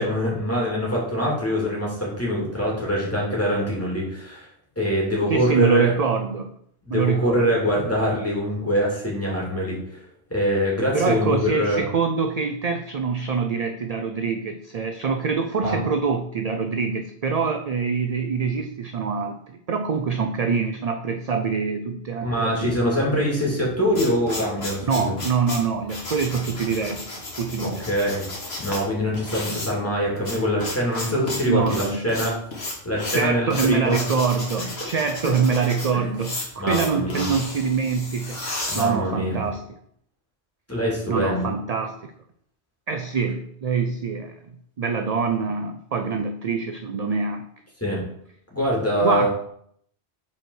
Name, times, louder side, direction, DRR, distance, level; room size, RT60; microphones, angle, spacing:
voice 1, 0.0-4.5 4.8-5.9 6.8-9.8 10.3-11.8 15.6-15.8 22.2-25.1 27.6-28.3 28.6-32.3 32.8-34.0 34.8-34.9 35.9-36.2 36.6-37.3 38.7-39.4 40.7-41.5 47.8-48.0 48.5-49.3, equal, 10° left, -4 dB, 2.5 m, -24 dB
voice 2, 5.3-6.5 6.9-7.5 10.9-23.0 24.9-27.9 31.4-32.0 33.1-39.6 41.1-42.1 42.9-44.3 44.8-47.5 49.0-49.3, right 5 dB, 50° right, 6 dB, 0.5 m, -25 dB
sound 1, 23.6-39.5, left 2 dB, 65° left, 1.8 m, -33 dB
5.4 x 4.5 x 6.3 m, 0.68 s
omnidirectional pair, 1.1 m